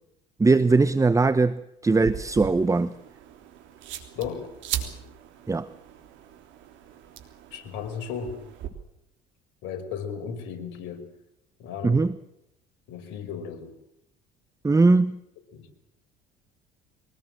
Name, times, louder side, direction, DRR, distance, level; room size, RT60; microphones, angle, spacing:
voice 1, 0.4-2.9 5.5-5.7 11.8-12.2 14.6-15.2, right 3 dB, 15° right, 14 dB, 1.0 m, -20 dB
sound 1, 1.8-8.7, right 10 dB, 65° right, 3.4 m, -39 dB
voice 2, 4.1-4.5 7.5-8.4 9.6-11.1 11.6-12.1 12.9-13.8 15.5-15.7, left 7 dB, 65° left, 7 dB, 5.2 m, -35 dB
23.5 x 19.5 x 7.7 m, 0.80 s
hypercardioid pair, 70°, 21 cm